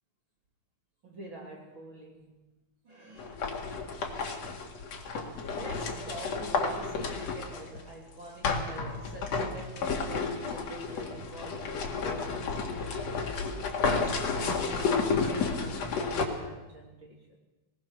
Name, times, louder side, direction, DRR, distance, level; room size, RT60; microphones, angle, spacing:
voice 1, 1.0-2.3 2.8-3.4 5.5-13.3 13.8-17.4, right 2 dB, 35° right, 3.3 m, -46 dB
sound 1, 3.2-7.8 8.4-16.2, left 4 dB, 50° left, 2.9 m, -31 dB
20.5 x 20.0 x 6.5 m
omnidirectional pair, 4.3 m